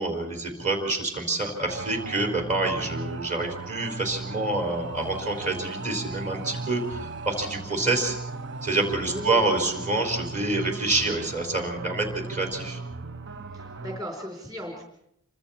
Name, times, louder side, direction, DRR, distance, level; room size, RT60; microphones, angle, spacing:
voice 1, 0.0-8.2 8.6-12.8, right 2 dB, 35° right, 2 dB, 4.4 m, -27 dB
sound 1, 1.7-14.0, right 3 dB, 55° right, 0.8 m, -37 dB
voice 2, 9.1-9.5 13.5-14.8, left 1 dB, 15° right, 1 dB, 3.9 m, -36 dB
28.0 x 24.5 x 4.4 m, 0.76 s
head